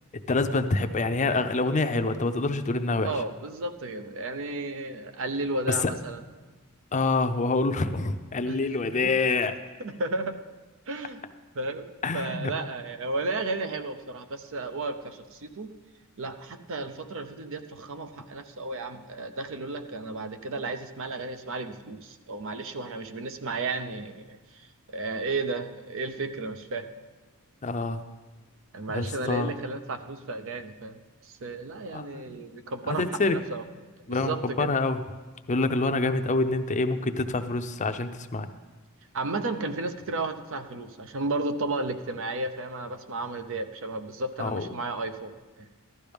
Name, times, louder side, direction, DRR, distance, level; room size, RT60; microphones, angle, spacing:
voice 1, 0.3-3.1 5.8-5.9 6.9-9.6 12.0-12.5 27.6-28.0 28.9-29.5 31.9-32.4 32.9-33.4 34.1-35.0 35.5-38.5 44.4-44.7, left 3 dB, 35° left, 9 dB, 0.6 m, -26 dB
voice 2, 3.0-6.2 8.4-9.1 9.8-10.3 10.9-11.2 11.5-15.7 16.2-26.9 28.7-33.6 34.1-34.7 39.1-45.7, right 2 dB, 60° right, 8 dB, 0.7 m, -33 dB
15.0 x 12.0 x 3.5 m, 1.3 s
head